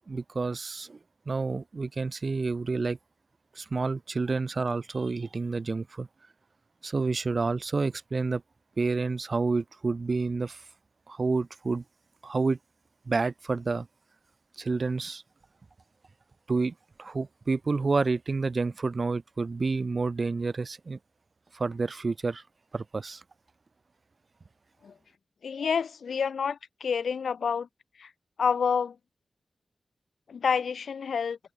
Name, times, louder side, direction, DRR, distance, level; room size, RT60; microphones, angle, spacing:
voice 1, 0.1-1.0 1.3-3.0 3.6-6.1 6.8-8.4 8.8-10.6 11.1-11.8 12.2-12.6 13.1-13.9 14.6-15.2 16.5-16.7 17.0-21.0 21.5-22.4 22.7-23.2, right 4 dB, 40° right, 2.4 m, -29 dB
voice 2, 25.4-27.7 28.0-28.1 28.4-29.0 30.3-31.4, left 6 dB, 85° left, 2.1 m, -28 dB
wide cardioid pair, 135°, 0 cm